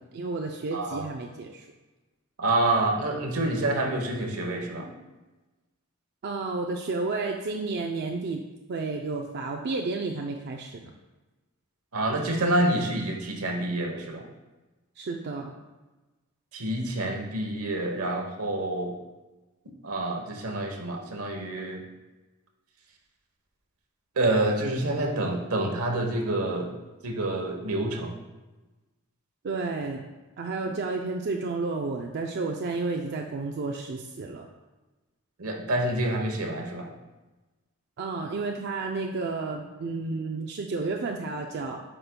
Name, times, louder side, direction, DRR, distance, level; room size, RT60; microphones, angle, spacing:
voice 1, 0.0-1.7 6.2-8.4 8.7-10.9 15.0-15.5 29.4-30.1 30.4-34.5 38.0-41.8, right 3 dB, 50° right, 1 dB, 0.4 m, -31 dB
voice 2, 0.7-1.1 2.4-4.9 11.9-14.3 16.5-18.9 19.8-21.8 24.2-26.7 27.0-28.1 35.4-36.9, right 1 dB, 80° right, 2 dB, 1.0 m, -27 dB
8.7 x 5.1 x 2.2 m, 1.2 s
head